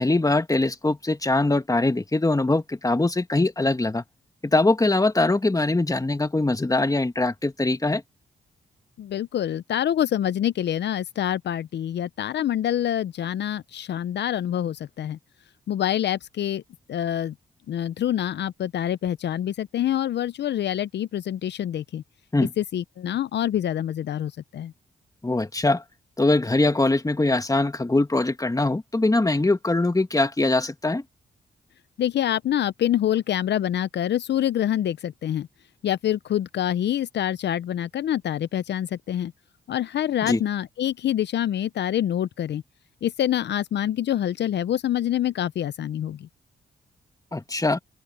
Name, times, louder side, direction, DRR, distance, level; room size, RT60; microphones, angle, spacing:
voice 1, 0.0-4.0 4.4-8.0 22.3-22.5 25.2-25.8 26.2-31.0 40.3-40.4 47.3-47.8, left 2 dB, 20° left, 1.6 m, -22 dB
voice 2, 9.0-15.2 15.7-16.6 16.9-17.3 17.7-22.0 22.4-24.7 32.0-35.5 35.8-39.3 39.7-42.6 43.0-46.3, left 11 dB, 70° left, 0.6 m, -26 dB
open air
supercardioid pair, 50°, 19 cm